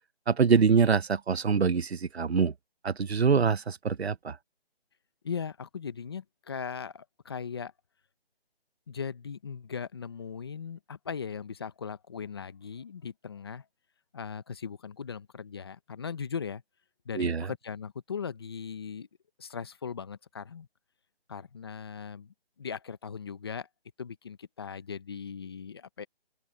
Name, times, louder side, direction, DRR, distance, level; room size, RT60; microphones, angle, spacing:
voice 1, 0.3-2.5 2.8-4.4 17.1-17.5, right 6 dB, 80° right, 1.1 m, -24 dB
voice 2, 5.2-7.7 8.9-13.6 14.1-16.6 17.0-19.1 19.4-20.7 21.3-23.7 24.0-26.0, left 6 dB, 25° left, 1.0 m, -38 dB
open air
hypercardioid pair, 170°, 31 cm